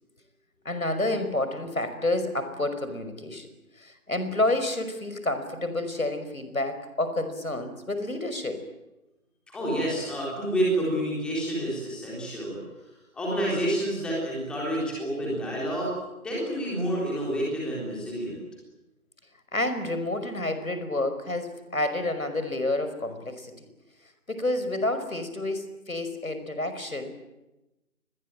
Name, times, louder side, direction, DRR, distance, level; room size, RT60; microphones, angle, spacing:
voice 1, 0.7-3.5 3.8-8.6 19.5-23.7 24.3-27.1, left 2 dB, 70° left, 9 dB, 5.5 m, -29 dB
voice 2, 9.5-12.6 13.1-15.9 16.2-18.4, right 1 dB, ahead, -5 dB, 3.8 m, -29 dB
28.0 x 21.5 x 9.0 m, 0.99 s
figure-of-eight pair, 160°, 44 cm